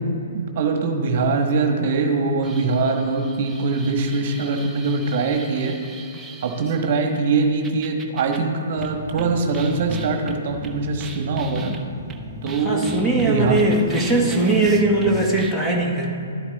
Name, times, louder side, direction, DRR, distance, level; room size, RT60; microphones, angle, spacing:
voice 1, 0.0-5.7 6.4-11.7 12.4-13.6, right 4 dB, 50° right, 3 dB, 1.4 m, -22 dB
sound 1, 2.4-7.0 7.6-8.4 8.8-15.5, right 1 dB, 15° right, 0.9 m, -36 dB
voice 2, 12.6-16.1, right 2 dB, 5° left, -2 dB, 1.8 m, -20 dB
12.0 x 9.9 x 4.1 m, 2.7 s
hypercardioid pair, 125°, 0 cm